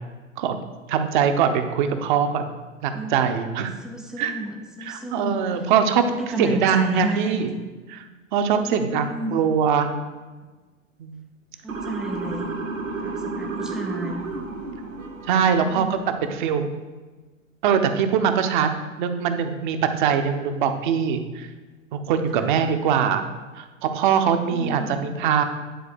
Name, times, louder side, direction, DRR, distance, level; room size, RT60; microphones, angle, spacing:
voice 1, 0.9-2.5 2.8-3.7 4.2-4.3 4.8-6.0 6.3-7.5 7.9-8.0 8.3-9.9 11.0-11.2 15.3-16.7 17.6-18.7 19.0-21.5 21.9-23.3 23.6-25.4, right 7 dB, 35° right, 7 dB, 0.9 m, -22 dB
voice 2, 3.8-5.4 6.0-7.5 8.6-9.3 11.6-12.5 13.0-14.2 15.7-16.2 22.3-22.5 24.5-25.1, right 1 dB, ahead, 1 dB, 0.4 m, -31 dB
Motor vehicle (road) / Siren, 11.7-15.8, right 3 dB, 70° right, 1.6 m, -32 dB
10.5 x 4.1 x 6.7 m, 1.3 s
figure-of-eight pair, 105°, 40 cm